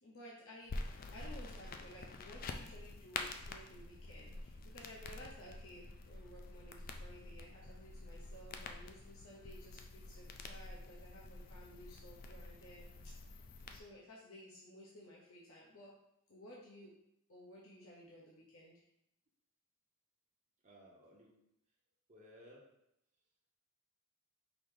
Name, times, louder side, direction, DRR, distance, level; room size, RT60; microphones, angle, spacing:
voice 1, 0.0-13.2 13.6-15.9 16.3-16.9 17.3-18.8, equal, 70° left, -5 dB, 0.8 m, -56 dB
sound 1, 0.7-13.8, left 3 dB, 40° left, 0.3 m, -48 dB
voice 2, 20.6-21.3 22.1-22.7 23.1-23.2, equal, 30° right, -3 dB, 0.7 m, -59 dB
4.9 x 2.7 x 3.7 m, 0.80 s
head